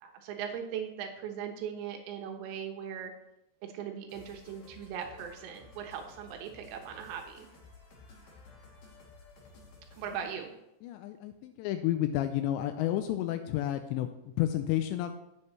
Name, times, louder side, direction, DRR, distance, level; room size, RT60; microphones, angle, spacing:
voice 1, 0.0-3.1 3.6-7.5 9.9-10.5, right 8 dB, 85° right, 3 dB, 3.8 m, -39 dB
sound 1, 4.1-10.4, left 3 dB, 55° left, 4.1 m, -55 dB
voice 2, 10.8-14.1 14.4-15.1, left 13 dB, 85° left, 8 dB, 2.5 m, -30 dB
18.0 x 7.6 x 3.2 m, 0.88 s
omnidirectional pair, 5.6 m